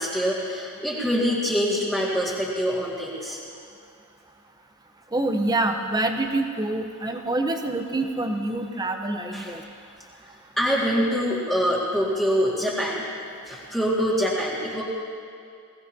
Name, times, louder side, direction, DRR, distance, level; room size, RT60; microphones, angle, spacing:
voice 1, 0.0-3.4 9.3-9.5 10.6-13.0 13.5-14.8, equal, ahead, -7 dB, 2.0 m, -25 dB
voice 2, 5.1-9.6, right 2 dB, 15° right, 4 dB, 0.8 m, -26 dB
21.5 x 17.0 x 2.8 m, 2.3 s
head